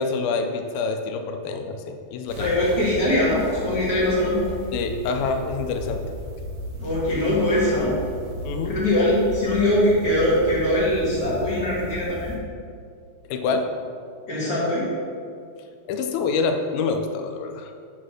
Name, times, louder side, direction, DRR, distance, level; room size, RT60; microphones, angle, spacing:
voice 1, 0.0-2.6 4.7-6.1 8.4-8.8 13.3-13.7 15.9-17.7, left 4 dB, 90° left, 6 dB, 2.4 m, -26 dB
sound 1, 2.3-12.4, equal, 90° right, 1.4 m, -35 dB
voice 2, 2.4-4.4 6.8-8.0 8.7-12.4 14.3-14.9, left 1 dB, 35° left, -8 dB, 1.5 m, -22 dB
8.0 x 4.1 x 6.3 m, 2.3 s
omnidirectional pair, 4.1 m